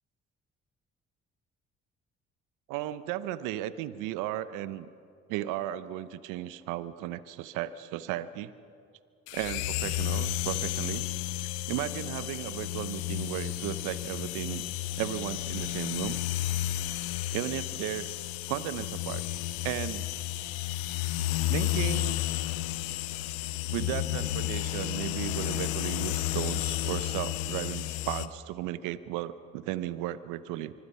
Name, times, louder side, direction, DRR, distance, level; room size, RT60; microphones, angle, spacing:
voice 1, 2.7-4.9 5.3-8.5 9.3-11.0 11.7-14.6 15.0-16.2 17.3-18.1 18.5-19.2 19.6-20.0 21.5-22.2 23.7-30.7, right 13 dB, 80° right, 14 dB, 0.8 m, -35 dB
sound 1, 9.3-28.3, left 15 dB, 85° left, 0.8 m, -32 dB
25.0 x 24.0 x 5.6 m, 2.4 s
hypercardioid pair, 50°, 31 cm